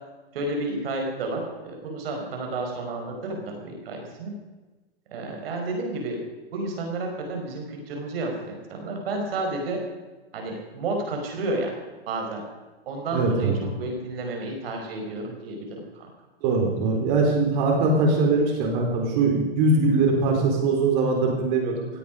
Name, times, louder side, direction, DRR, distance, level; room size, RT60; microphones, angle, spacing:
voice 1, 0.3-4.3 5.1-6.2 6.5-9.8 10.3-11.7 12.1-12.4 12.8-13.5 13.8-15.7 15.9-16.1, right 2 dB, 65° right, 2 dB, 4.9 m, -31 dB
voice 2, 13.1-13.5 16.4-21.9, right 3 dB, 45° right, 1 dB, 4.2 m, -22 dB
17.0 x 16.0 x 5.2 m, 1.2 s
hypercardioid pair, 140°, 31 cm